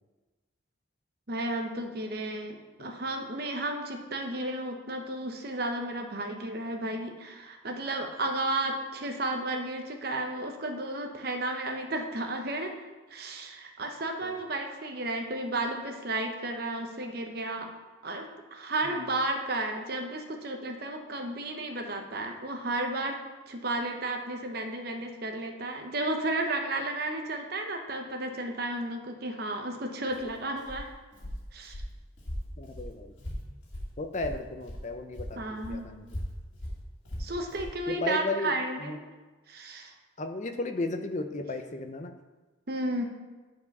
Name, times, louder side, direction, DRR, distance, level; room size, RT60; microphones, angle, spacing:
voice 1, 1.3-12.8 13.1-17.7 18.0-23.2 23.5-30.9 31.5-31.8 35.4-35.8 37.2-39.0 39.5-39.9 42.7-43.0, right 2 dB, 50° right, 4 dB, 0.9 m, -33 dB
Walk footsteps, 30.1-34.9 35.1-37.8, equal, 65° left, 2.4 m, -39 dB
voice 2, 32.6-33.1 34.0-35.4 35.7-36.0 37.9-38.5 38.8-39.0 40.2-42.1, left 2 dB, 35° left, 7 dB, 0.5 m, -34 dB
9.6 x 4.7 x 5.4 m, 1.3 s
head